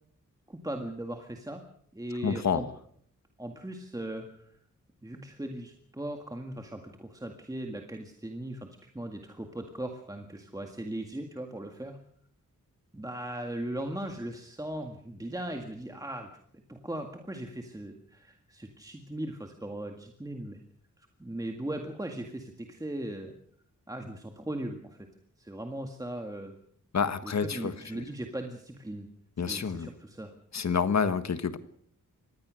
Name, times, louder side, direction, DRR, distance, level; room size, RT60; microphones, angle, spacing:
voice 1, 0.5-1.6 1.9-2.7 3.4-4.5 5.0-12.0 12.9-16.3 16.7-20.6 21.0-23.3 23.9-25.1 25.4-26.6 27.2-29.1 29.4-30.3, right 1 dB, 10° right, 3 dB, 1.9 m, -38 dB
voice 2, 2.2-2.6 26.9-27.7 29.4-29.9 30.5-31.6, left 6 dB, 55° left, 11 dB, 1.5 m, -28 dB
25.5 x 19.0 x 6.4 m, 0.64 s
wide cardioid pair, 160°, 32 cm